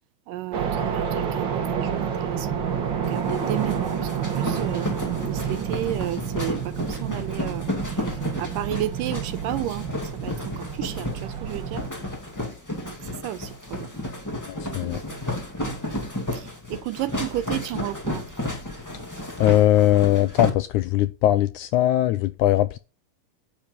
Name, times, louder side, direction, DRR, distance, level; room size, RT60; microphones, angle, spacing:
voice 1, 0.3-2.6 2.9-9.9 10.1-11.8 12.9-13.9 16.3-18.2, right 14 dB, 80° right, 2.2 m, -32 dB
sound 1, 0.5-11.9, right 7 dB, 50° right, 1.4 m, -29 dB
sound 2, 3.0-20.5, left 1 dB, 10° left, 1.0 m, -32 dB
voice 2, 14.5-15.0 19.4-22.8, left 14 dB, 80° left, 1.8 m, -20 dB
10.0 x 7.1 x 5.2 m
omnidirectional pair, 4.0 m